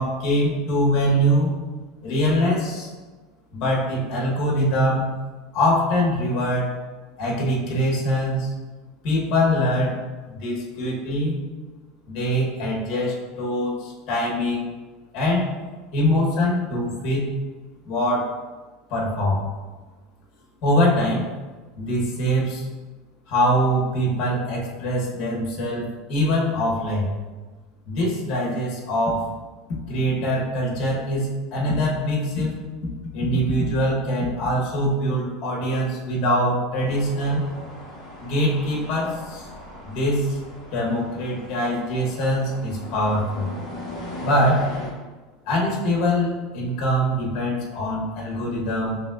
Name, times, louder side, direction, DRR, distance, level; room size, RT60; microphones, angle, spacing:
voice 1, 0.0-1.5 2.0-2.9 3.5-5.1 5.5-6.7 7.2-8.5 9.0-10.0 10.3-11.4 12.1-14.7 15.1-15.5 15.9-17.3 17.8-18.4 18.9-19.5 20.6-21.3 21.8-22.6 23.3-27.1 27.9-29.3 29.9-32.6 33.1-37.5 38.2-39.5 39.8-40.4 40.7-43.5 44.2-44.7 45.4-49.0, equal, 45° left, -3 dB, 1.1 m, -23 dB
sound 1, 36.8-44.9, left 1 dB, 25° left, 1.4 m, -39 dB
5.0 x 3.1 x 2.4 m, 1.3 s
supercardioid pair, 150°, 0 cm